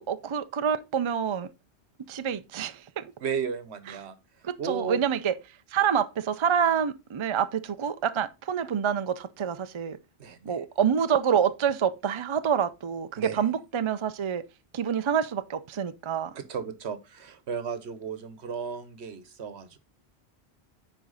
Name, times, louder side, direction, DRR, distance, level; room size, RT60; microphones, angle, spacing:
voice 1, 0.0-1.5 2.1-3.1 4.4-5.3 5.7-10.0 10.4-14.4 14.7-16.3, right 8 dB, 40° right, 0.5 m, -27 dB
voice 2, 3.2-4.1 4.6-5.0 10.2-10.6 13.2-13.4 16.3-19.8, right 6 dB, 80° right, 1.2 m, -34 dB
9.8 x 4.5 x 4.0 m
omnidirectional pair, 1.1 m